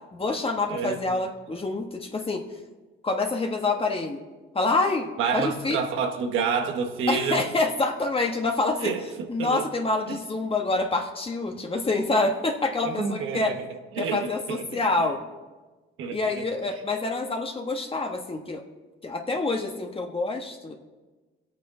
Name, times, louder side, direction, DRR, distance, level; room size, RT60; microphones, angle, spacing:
voice 1, 0.1-2.4 3.0-4.2 4.5-5.8 7.1-8.9 9.3-13.5 14.0-15.2 16.1-18.6 19.0-20.7, left 3 dB, 30° left, 3 dB, 1.4 m, -27 dB
voice 2, 5.2-7.5 8.8-9.6 10.1-10.2 12.8-13.6 14.0-14.8 16.0-16.4, right 6 dB, 90° right, 5 dB, 1.3 m, -28 dB
21.5 x 8.6 x 3.8 m, 1.2 s
cardioid pair, 90°, 20 cm